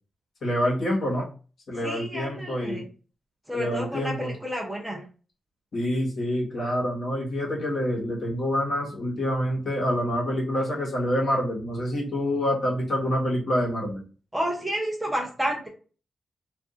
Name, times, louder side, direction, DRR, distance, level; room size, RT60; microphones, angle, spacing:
voice 1, 0.4-1.3 1.7-2.8 3.5-4.3 5.7-14.0, equal, 55° left, -3 dB, 1.3 m, -27 dB
voice 2, 1.8-2.9 3.5-5.0 14.3-15.7, equal, 5° right, 0 dB, 0.5 m, -30 dB
2.6 x 2.4 x 3.7 m, 0.38 s
wide cardioid pair, 170°, 0 cm